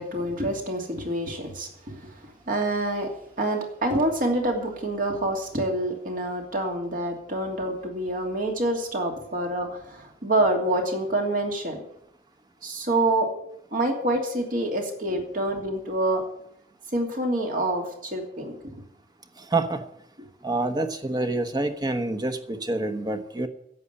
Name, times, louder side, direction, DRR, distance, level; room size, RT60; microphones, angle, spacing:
voice 1, 0.0-3.1 3.4-11.8 12.6-13.3 13.7-16.2 16.9-18.6, right 1 dB, 50° right, 2.8 m, -27 dB
voice 2, 20.4-23.5, right 2 dB, 25° right, 1.1 m, -27 dB
11.0 x 8.5 x 9.5 m
head